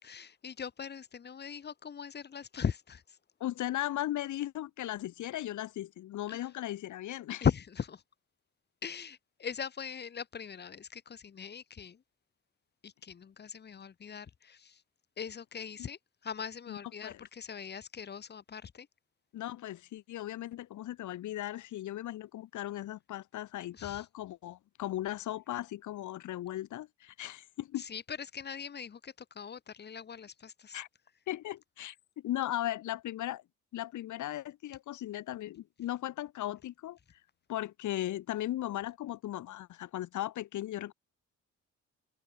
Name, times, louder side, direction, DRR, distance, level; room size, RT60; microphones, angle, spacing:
voice 1, 0.0-3.0 6.3-6.4 7.4-8.0 8.8-12.0 12.8-14.8 15.2-18.9 23.7-24.0 27.8-30.8, left 7 dB, 35° left, 0.9 m, -39 dB
voice 2, 3.4-7.5 15.8-15.9 16.7-17.3 19.3-27.8 30.7-30.9 31.3-33.4 33.7-37.0 37.5-40.9, left 13 dB, 75° left, 1.9 m, -37 dB
cardioid pair, 90°, 30 cm